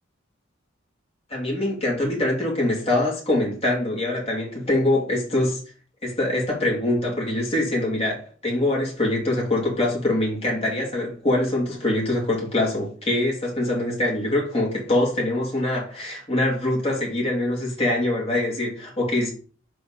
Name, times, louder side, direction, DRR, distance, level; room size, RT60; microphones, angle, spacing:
voice 1, 1.3-5.6 6.0-19.3, left 1 dB, 30° left, -4 dB, 2.5 m, -24 dB
6.6 x 3.8 x 3.7 m, 0.39 s
head